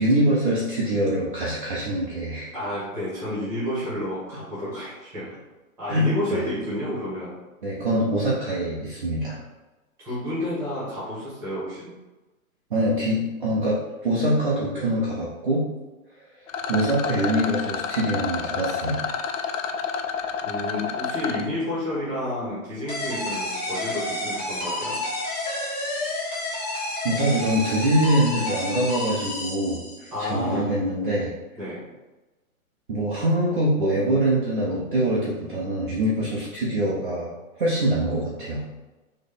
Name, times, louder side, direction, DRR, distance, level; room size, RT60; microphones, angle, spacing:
voice 1, 0.0-2.5 5.9-6.5 7.6-9.4 12.7-15.6 16.7-19.0 27.0-31.3 32.9-38.6, right 1 dB, 35° right, -7 dB, 0.7 m, -24 dB
voice 2, 2.5-5.3 5.8-7.4 10.0-11.9 20.4-25.0 30.1-30.7 31.6-31.9, left 1 dB, 5° right, -10 dB, 1.3 m, -30 dB
Rattle, 16.5-21.5, left 6 dB, 60° left, 0.5 m, -29 dB
sound 1, 22.9-30.2, left 1 dB, 35° left, 1.2 m, -30 dB
4.3 x 3.1 x 3.5 m, 1.1 s
hypercardioid pair, 170°, 44 cm